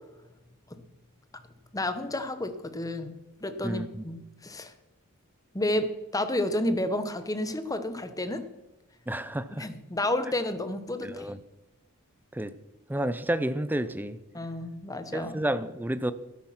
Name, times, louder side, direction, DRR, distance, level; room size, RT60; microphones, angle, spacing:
voice 1, 1.7-4.7 5.5-8.5 9.6-11.3 14.3-15.4, left 1 dB, 15° left, 1.0 m, -31 dB
voice 2, 3.6-4.0 9.1-9.7 11.0-11.4 12.3-12.5 12.9-14.2 15.1-16.1, right 1 dB, 10° right, 0.6 m, -30 dB
13.0 x 10.5 x 5.8 m
head